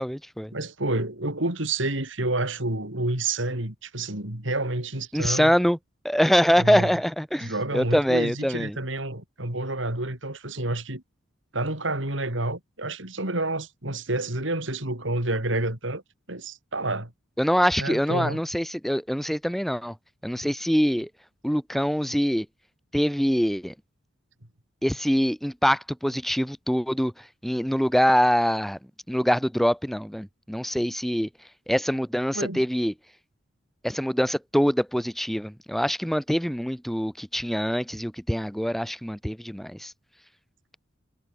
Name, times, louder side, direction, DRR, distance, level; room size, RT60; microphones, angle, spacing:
voice 1, 0.0-0.5 5.1-5.8 6.0-8.8 17.4-19.9 20.2-21.1 21.4-22.5 22.9-23.7 24.8-27.1 27.4-28.8 29.1-31.3 31.7-32.9 33.8-39.9, equal, ahead, 1.3 m, -24 dB
voice 2, 0.5-5.5 6.6-6.9 7.4-11.0 11.5-16.0 16.3-17.1 17.8-18.4 32.3-32.6, right 2 dB, 70° right, 4.6 m, -29 dB
head